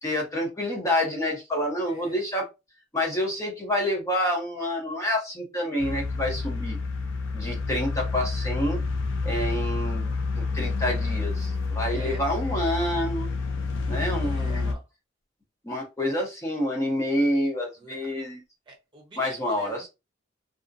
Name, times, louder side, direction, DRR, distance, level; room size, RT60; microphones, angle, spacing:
voice 1, 0.0-2.5 2.9-6.8 7.3-8.8 9.2-13.3 13.9-14.7 15.6-18.4 19.2-19.9, left 1 dB, 15° left, 0.6 m, -28 dB
voice 2, 1.9-2.2 11.9-12.4 14.0-14.8 17.8-18.1 18.7-19.9, right 2 dB, 25° right, 0.9 m, -46 dB
sound 1, 5.8-14.7, left 4 dB, 80° left, 0.4 m, -29 dB
2.3 x 2.0 x 2.5 m
head